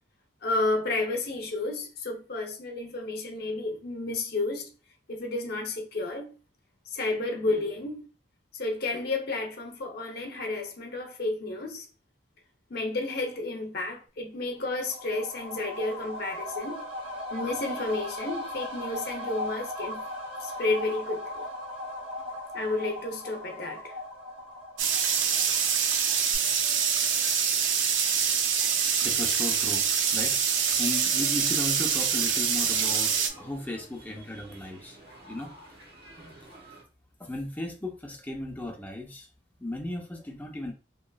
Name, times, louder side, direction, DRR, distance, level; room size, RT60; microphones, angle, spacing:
voice 1, 0.4-4.7 5.1-6.3 6.9-8.1 8.5-11.9 12.7-16.9 17.3-20.0 20.4-21.4 22.5-23.9, left 2 dB, 55° left, 0.7 m, -31 dB
sound 1, 14.6-26.0 26.3-26.4, left 1 dB, 30° right, 0.7 m, -37 dB
sound 2, 24.8-33.3, right 7 dB, 85° right, 0.4 m, -25 dB
voice 2, 28.6-35.0 35.3-35.7 36.4-36.5 37.2-39.3 39.6-40.7, left 1 dB, 10° left, 0.5 m, -36 dB
sound 3, 31.7-36.8, right 1 dB, 60° right, 1.1 m, -51 dB
2.9 x 2.4 x 2.3 m
head